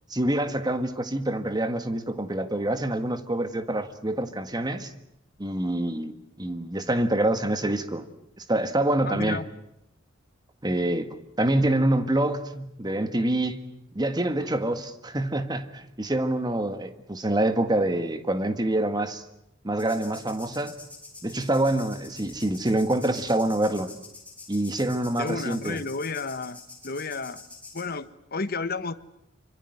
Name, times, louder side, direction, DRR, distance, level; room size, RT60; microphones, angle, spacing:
voice 1, 0.1-4.9 5.4-6.1 6.4-8.1 8.4-9.4 10.6-13.7 13.9-19.2 19.6-20.8 21.2-23.9 24.5-25.8, right 1 dB, 20° right, 1.7 m, -26 dB
voice 2, 9.1-9.4 25.2-27.4 27.7-28.9, left 4 dB, 50° left, 1.3 m, -32 dB
sound 1, 19.8-27.8, left 3 dB, 5° left, 6.8 m, -46 dB
26.0 x 24.5 x 8.0 m
head